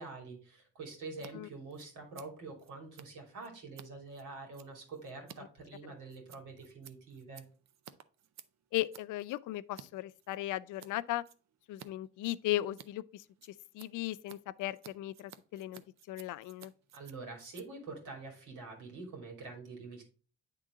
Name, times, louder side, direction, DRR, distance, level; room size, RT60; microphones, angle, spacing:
voice 1, 0.0-7.4 16.9-20.0, right 3 dB, 80° right, 2.7 m, -46 dB
Scissors, 1.1-1.3 1.6-9.9 10.2-10.9 11.2-11.9 12.2-18.9, right 10 dB, 60° right, 0.6 m, -56 dB
voice 2, 8.7-11.2 11.7-13.2 13.7-15.8 16.1-16.7, left 15 dB, 80° left, 0.5 m, -36 dB
8.8 x 3.7 x 3.6 m
cardioid pair, 90°, 30 cm